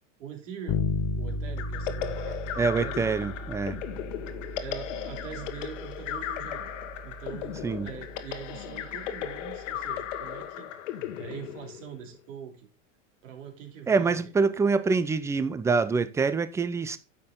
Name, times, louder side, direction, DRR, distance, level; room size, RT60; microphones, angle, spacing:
voice 1, 0.2-0.9 1.2-2.4 2.7-3.0 4.6-6.7 7.0-12.7 13.2-14.3, right 7 dB, 80° right, 2.9 m, -43 dB
Bass guitar, 0.7-10.3, left 2 dB, 40° left, 1.3 m, -36 dB
sound 1, 1.6-12.2, left 10 dB, 75° left, 1.7 m, -36 dB
voice 2, 2.6-3.8 7.6-7.9 13.9-17.0, right 4 dB, 10° right, 0.4 m, -25 dB
10.0 x 6.8 x 3.8 m
supercardioid pair, 120°, 38 cm